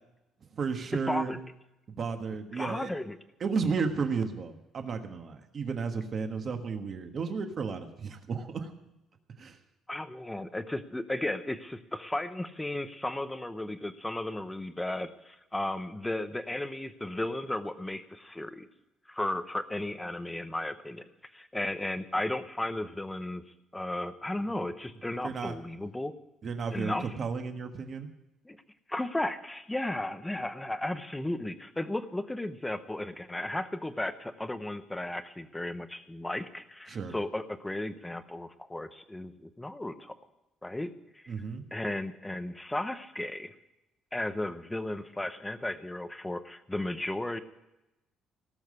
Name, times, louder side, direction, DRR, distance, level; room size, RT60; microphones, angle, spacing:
voice 1, 0.5-1.4 1.9-2.9 3.4-8.7 9.4-9.6 25.2-25.6 26.4-28.1 36.9-37.1 41.3-41.6, right 5 dB, 30° right, 6 dB, 1.4 m, -33 dB
voice 2, 1.1-1.4 2.5-3.2 9.9-18.7 19.1-21.1 21.3-23.4 23.7-26.1 26.7-27.1 28.5-28.6 28.9-40.1 40.6-41.3 41.7-43.5 44.1-47.4, left 1 dB, 5° left, 10 dB, 0.8 m, -34 dB
18.0 x 7.2 x 9.7 m, 0.92 s
cardioid pair, 180°, 0 cm